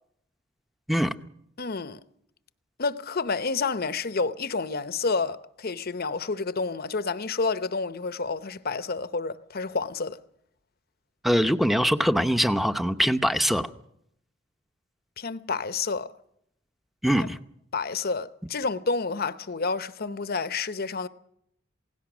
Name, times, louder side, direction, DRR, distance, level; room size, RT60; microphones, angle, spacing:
voice 1, 1.6-2.0 2.8-10.2 15.2-16.1 17.7-21.1, left 4 dB, 50° left, 0.9 m, -29 dB
voice 2, 11.2-13.7 17.0-17.4, equal, ahead, 0.8 m, -23 dB
28.0 x 17.5 x 6.2 m
head